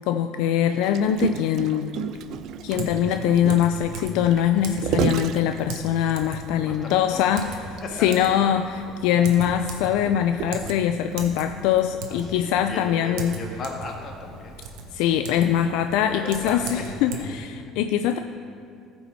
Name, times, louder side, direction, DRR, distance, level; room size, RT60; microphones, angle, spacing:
voice 1, 0.1-1.9 2.6-7.5 8.0-8.6 9.0-13.3 14.9-18.2, left 10 dB, 80° left, 7 dB, 0.3 m, -22 dB
Gurgling, 0.8-6.3 6.9-7.0 7.3-7.5 7.8-7.9 8.6-11.1 11.8-11.9, right 9 dB, 60° right, 0.3 m, -31 dB
Typing, 2.1-17.2, right 3 dB, 80° right, 1.1 m, -39 dB
voice 2, 6.6-8.5 12.1-14.6 16.1-17.2, left 2 dB, 45° left, 1 dB, 1.6 m, -37 dB
14.5 x 5.4 x 4.5 m, 2.4 s
cardioid pair, 115°, 0 cm